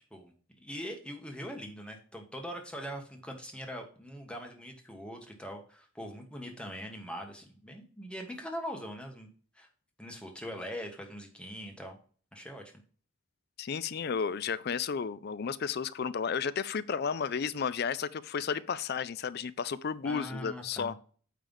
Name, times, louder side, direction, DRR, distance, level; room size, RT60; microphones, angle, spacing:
voice 1, 0.0-9.3 9.5-9.7 10.0-12.0 12.3-12.6 20.0-21.0, equal, 5° left, 1.3 m, -42 dB
voice 2, 13.6-20.9, left 6 dB, 50° left, 0.4 m, -33 dB
9.0 x 3.4 x 5.4 m
head